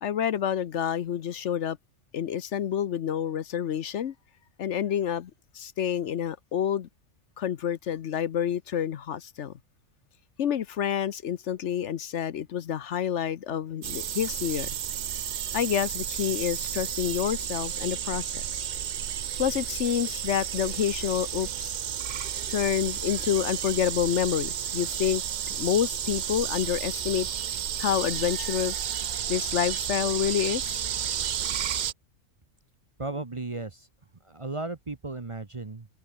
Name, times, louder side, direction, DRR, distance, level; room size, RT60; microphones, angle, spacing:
voice 1, 0.0-1.8 2.1-4.1 4.6-5.3 5.5-6.9 7.4-9.5 10.4-14.7 15.5-18.6 19.4-21.7 22.5-25.2 25.5-27.3 27.8-28.9 29.3-30.8, left 9 dB, 65° left, 1.0 m, -28 dB
sound 1, 13.8-31.9, right 10 dB, 60° right, 0.5 m, -32 dB
voice 2, 33.0-33.9 34.2-35.9, right 3 dB, 25° right, 0.9 m, -35 dB
omnidirectional pair, 1.3 m